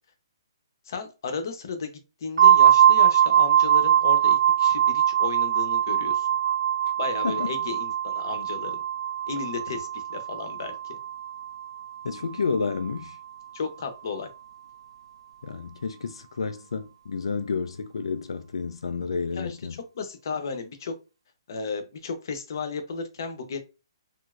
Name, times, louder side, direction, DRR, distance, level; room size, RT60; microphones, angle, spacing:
voice 1, 0.9-6.3 7.0-8.8 9.3-11.0 13.5-14.3 19.3-19.6 19.9-20.9 21.5-23.6, left 5 dB, 45° left, 0.7 m, -34 dB
sound 1, 2.4-12.0, right 10 dB, 70° right, 0.3 m, -22 dB
voice 2, 7.2-7.5 12.0-13.2 15.4-19.8, left 5 dB, 90° left, 0.3 m, -30 dB
3.1 x 2.5 x 2.4 m
hypercardioid pair, 170°, 3 cm